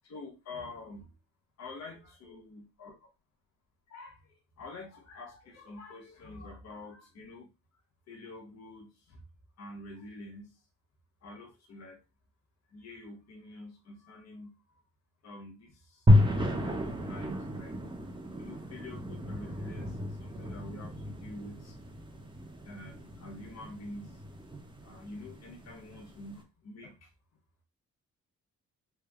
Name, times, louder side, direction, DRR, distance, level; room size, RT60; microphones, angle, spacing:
voice 1, 0.0-1.1 1.6-3.1 3.9-4.2 4.6-7.5 8.1-9.2 9.6-10.5 11.2-12.0 12.7-14.8 15.2-17.7 18.4-21.8 22.6-24.2 24.8-27.1, left 2 dB, 60° left, 0 dB, 1.2 m, -47 dB
sound 1, 16.1-26.3, left 1 dB, 15° right, 0.9 m, -31 dB
3.4 x 2.2 x 3.5 m, 0.26 s
cardioid pair, 90°, 30 cm